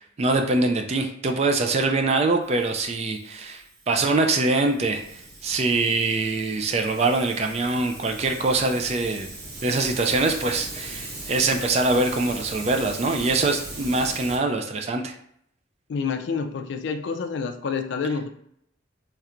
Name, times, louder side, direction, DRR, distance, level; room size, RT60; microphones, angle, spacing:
voice 1, 0.0-5.0 5.4-9.3 9.6-15.1, right 3 dB, 35° right, 5 dB, 0.3 m, -23 dB
Hiss, 2.4-14.4, right 2 dB, 55° right, 0.9 m, -39 dB
voice 2, 15.9-18.3, left 5 dB, 60° left, 6 dB, 0.3 m, -28 dB
3.2 x 2.9 x 2.4 m, 0.70 s
head